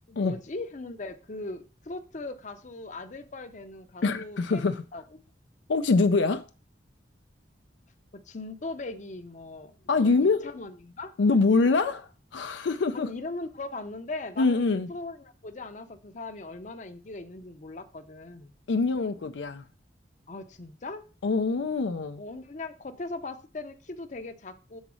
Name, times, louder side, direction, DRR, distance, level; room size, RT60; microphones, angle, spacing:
voice 1, 0.1-5.0 8.1-11.1 12.9-18.5 20.3-21.0 22.2-24.8, left 2 dB, 40° left, 0.7 m, -39 dB
voice 2, 4.0-4.8 5.7-6.4 9.9-10.5 11.2-13.1 14.4-14.9 18.7-19.7 21.2-22.2, left 3 dB, 75° left, 0.5 m, -24 dB
7.2 x 4.0 x 6.1 m
head